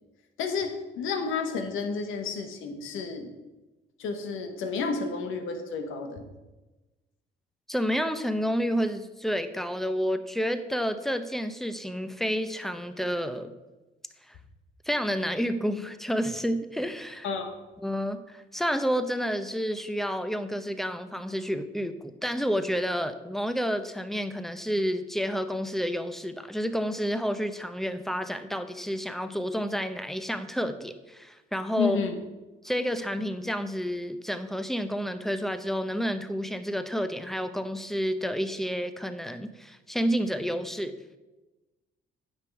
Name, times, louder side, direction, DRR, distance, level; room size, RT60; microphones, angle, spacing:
voice 1, 0.4-3.3 4.0-6.2 17.2-17.5 31.8-32.2, left 5 dB, 85° left, 6 dB, 1.3 m, -31 dB
voice 2, 7.7-13.5 14.3-14.4 14.9-17.3 17.8-32.0 32.6-41.0, equal, ahead, 9 dB, 0.7 m, -30 dB
9.6 x 6.0 x 4.7 m, 1.1 s
cardioid pair, 90°, 20 cm